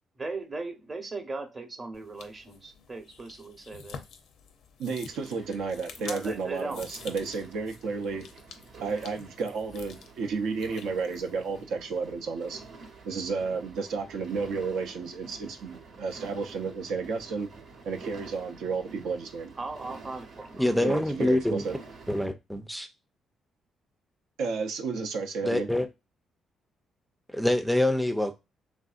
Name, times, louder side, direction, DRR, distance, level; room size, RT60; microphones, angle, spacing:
voice 1, 0.2-4.0 6.0-6.9 19.6-20.7, right 3 dB, 30° right, 0.8 m, -38 dB
sound 1, 1.9-11.6, left 6 dB, 75° left, 0.5 m, -48 dB
voice 2, 4.8-8.2 8.8-12.6 13.0-17.5 17.8-19.5 20.8-21.7 24.4-25.7, right 4 dB, 85° right, 0.5 m, -32 dB
sound 2, 5.1-22.3, right 4 dB, 65° right, 0.9 m, -49 dB
voice 3, 20.6-21.6 22.1-22.9 25.4-25.9 27.3-28.4, left 1 dB, ahead, 0.4 m, -25 dB
3.3 x 2.6 x 2.3 m
cardioid pair, 90°, 0 cm